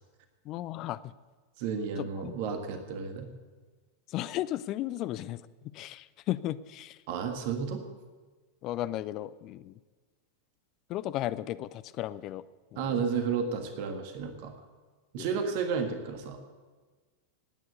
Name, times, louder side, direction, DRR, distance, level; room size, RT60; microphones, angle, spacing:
voice 1, 0.5-1.0 2.0-2.3 4.1-5.4 5.7-7.0 8.6-9.7 10.9-12.4 12.7-13.0 15.2-15.3, left 14 dB, 35° left, 16 dB, 0.6 m, -35 dB
voice 2, 1.6-3.3 7.1-7.8 12.8-14.5 15.1-16.4, right 6 dB, 50° right, 6 dB, 1.7 m, -32 dB
18.5 x 9.4 x 6.8 m, 1.4 s
figure-of-eight pair, 90°, 0 cm